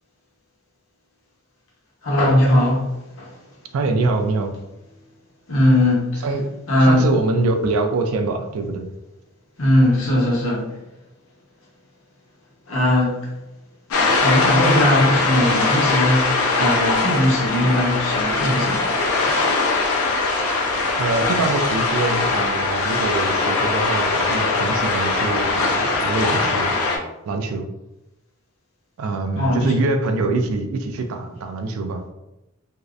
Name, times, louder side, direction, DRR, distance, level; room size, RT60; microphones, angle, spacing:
voice 1, 2.0-3.7 5.5-6.3 6.7-7.1 9.6-10.8 12.7-13.4 14.2-19.5 29.4-29.8, left 1 dB, 70° left, -4 dB, 0.8 m, -20 dB
voice 2, 3.7-4.5 6.2-8.9 20.8-26.7 27.2-27.7 29.0-32.0, right 3 dB, 80° right, 6 dB, 0.3 m, -24 dB
sound 1, 13.9-27.0, left 3 dB, 90° left, 0.4 m, -21 dB
2.6 x 2.0 x 2.3 m, 0.94 s
head